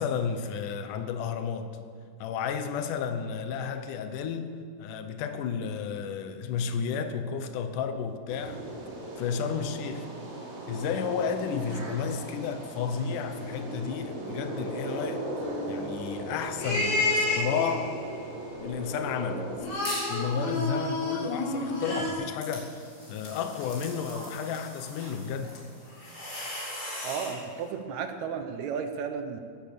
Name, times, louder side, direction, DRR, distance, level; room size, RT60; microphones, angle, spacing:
voice 1, 0.0-1.7 2.2-4.5 4.8-8.6 9.2-10.1 10.7-15.3 15.7-18.0 18.6-19.5 20.1-22.8 23.1-25.6, left 6 dB, 70° left, 2.2 m, -32 dB
sound 1, 8.3-19.6, right 1 dB, 40° right, 3.6 m, -38 dB
sound 2, 15.4-15.9 16.6-18.0 19.6-22.1, left 2 dB, 85° left, 6.6 m, -29 dB
sound 3, 19.7-20.2 20.6-27.4, left 1 dB, 35° left, 4.9 m, -41 dB
voice 2, 27.0-29.4, right 6 dB, 70° right, 1.7 m, -33 dB
16.5 x 11.5 x 6.8 m
omnidirectional pair, 4.5 m